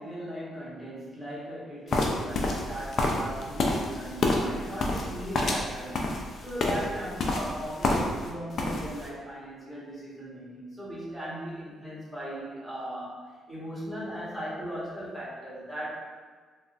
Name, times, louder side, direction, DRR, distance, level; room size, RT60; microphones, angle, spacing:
voice 1, 0.0-6.1 6.4-16.1, equal, ahead, -9 dB, 1.4 m, -38 dB
sound 1, 1.9-8.3 8.5-9.1, left 2 dB, 55° left, 0.5 m, -28 dB
3.5 x 2.4 x 2.5 m, 1.5 s
cardioid pair, 90°, 0 cm